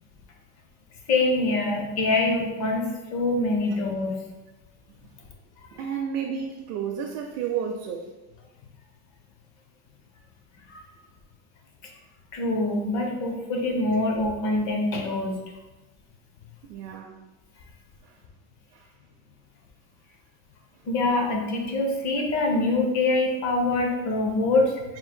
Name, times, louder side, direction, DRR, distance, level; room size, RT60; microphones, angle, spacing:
voice 1, 1.1-4.2 10.7-10.8 12.3-15.4 20.9-24.8, left 2 dB, 45° left, 1 dB, 0.7 m, -24 dB
voice 2, 5.7-8.1 16.7-17.2 18.0-18.2 18.7-18.9, right 7 dB, 60° right, 2 dB, 0.5 m, -32 dB
3.7 x 2.1 x 4.3 m, 1.1 s
cardioid pair, 160°, 41 cm